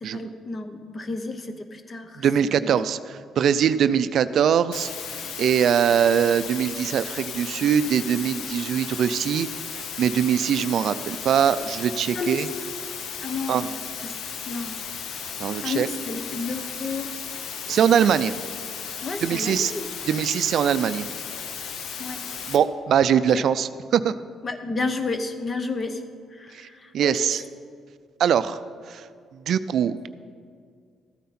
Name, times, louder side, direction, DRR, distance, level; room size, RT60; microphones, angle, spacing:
voice 1, 0.0-2.2 2.5-2.7 5.2-5.3 12.1-12.6 13.2-13.7 14.0-14.2 14.4-14.8 15.6-17.1 17.6-18.1 19.0-19.9 22.0-22.3 23.3-23.4 24.4-26.0 26.3-27.3, left 3 dB, 35° left, 8 dB, 0.9 m, -32 dB
voice 2, 2.2-4.9 5.4-12.5 13.5-13.6 15.4-15.9 17.7-18.3 19.2-19.7 20.1-21.1 22.5-24.1 26.5-26.7 26.9-27.4 28.2-28.6 28.9-29.1 29.3-30.1, right 8 dB, 70° right, 14 dB, 0.4 m, -22 dB
sound 1, 4.7-22.6, left 7 dB, 75° left, 0.8 m, -35 dB
13.5 x 9.3 x 4.3 m, 2.1 s
cardioid pair, 90°, 0 cm